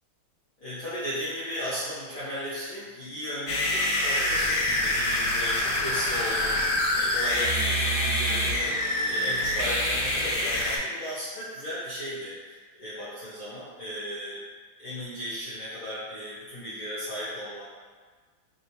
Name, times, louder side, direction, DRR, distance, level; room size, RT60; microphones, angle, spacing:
voice 1, 0.6-14.4 14.8-17.7, equal, 55° left, -12 dB, 1.0 m, -35 dB
sound 1, 3.5-10.8, left 1 dB, 80° left, 1.4 m, -26 dB
3.6 x 2.3 x 2.8 m, 1.5 s
omnidirectional pair, 2.2 m